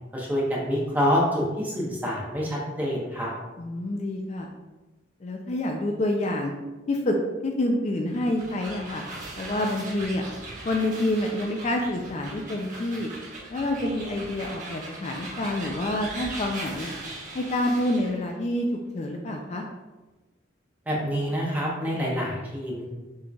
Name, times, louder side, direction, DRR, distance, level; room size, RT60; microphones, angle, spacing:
voice 1, 0.1-3.3 20.9-22.8, equal, 10° right, -4 dB, 0.9 m, -26 dB
voice 2, 3.6-4.5 5.2-6.5 6.9-7.2 7.4-9.0 9.4-10.2 10.6-13.1 13.5-16.9 17.3-18.7 18.9-19.6, left 1 dB, 35° left, 2 dB, 0.4 m, -27 dB
sound 1, 8.1-18.2, right 2 dB, 40° right, 1.2 m, -39 dB
6.1 x 3.2 x 2.3 m, 1.2 s
head